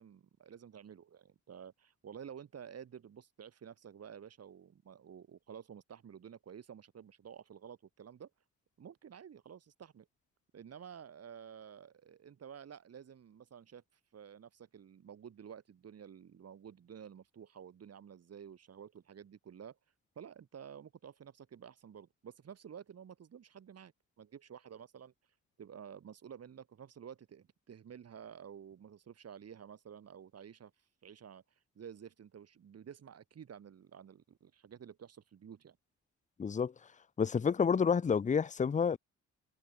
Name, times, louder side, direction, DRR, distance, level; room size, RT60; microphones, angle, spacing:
voice 1, 0.0-8.3 8.8-10.1 10.5-19.8 20.2-35.8, right 8 dB, 55° right, 7.8 m, -51 dB
voice 2, 36.4-36.7 37.2-39.0, left 6 dB, 25° left, 0.7 m, -29 dB
cardioid pair, 90°, 30 cm